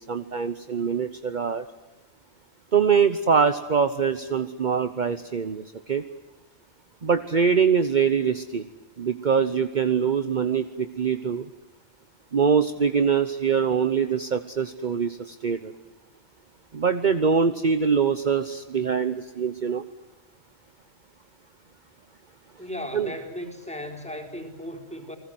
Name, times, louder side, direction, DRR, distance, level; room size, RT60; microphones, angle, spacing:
voice 1, 0.0-1.6 2.7-6.0 7.0-8.6 9.0-11.5 12.3-15.7 16.7-19.8 22.9-23.1, right 6 dB, 45° right, 10 dB, 1.1 m, -23 dB
voice 2, 22.6-25.2, left 1 dB, 5° left, 1 dB, 4.3 m, -36 dB
29.5 x 20.5 x 7.9 m, 1.1 s
omnidirectional pair, 1.1 m